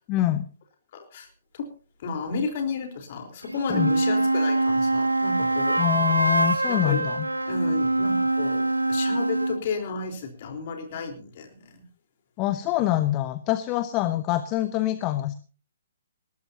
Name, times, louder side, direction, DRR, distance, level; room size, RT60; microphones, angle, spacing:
voice 1, 0.1-0.5 3.7-3.9 5.8-7.3 12.4-15.3, left 14 dB, 25° left, 12 dB, 1.0 m, -25 dB
voice 2, 0.9-1.3 1.5-1.7 2.0-5.8 6.7-7.0 7.5-11.8, left 4 dB, 45° left, 4 dB, 4.1 m, -32 dB
sound 1, 3.4-9.6, right 2 dB, 90° right, 1.6 m, -24 dB
20.5 x 18.0 x 2.9 m, 0.37 s
figure-of-eight pair, 130°, 0 cm